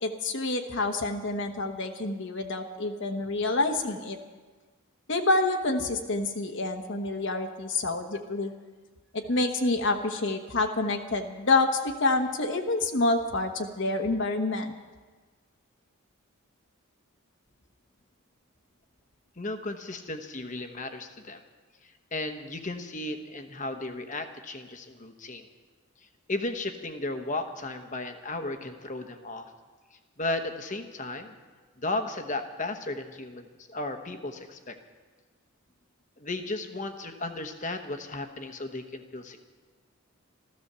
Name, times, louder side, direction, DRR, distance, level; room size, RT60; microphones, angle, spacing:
voice 1, 0.0-4.2 5.1-8.5 9.1-14.7, left 2 dB, 55° left, 4 dB, 1.1 m, -27 dB
voice 2, 19.4-21.4 21.8-25.5 26.3-29.5 30.2-31.3 31.8-34.8 36.2-39.4, left 2 dB, 35° left, 7 dB, 1.1 m, -35 dB
14.5 x 13.0 x 6.8 m, 1.4 s
head